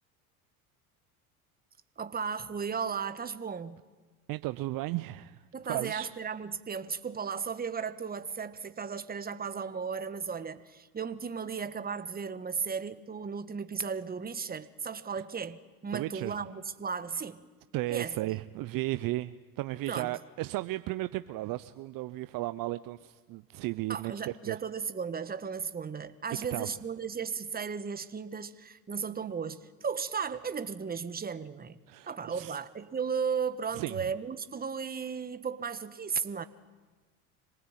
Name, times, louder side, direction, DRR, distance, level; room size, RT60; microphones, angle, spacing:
voice 1, 2.0-3.9 5.5-17.4 17.9-18.2 19.9-20.2 23.9-31.8 32.1-36.4, right 6 dB, 20° right, 1.4 m, -35 dB
voice 2, 4.3-5.4 5.7-6.1 15.9-16.4 17.7-24.1 24.5-24.6 26.5-26.7 31.9-32.6 33.7-34.0, right 17 dB, 50° right, 0.7 m, -34 dB
26.0 x 19.0 x 9.1 m
hypercardioid pair, 80°, 44 cm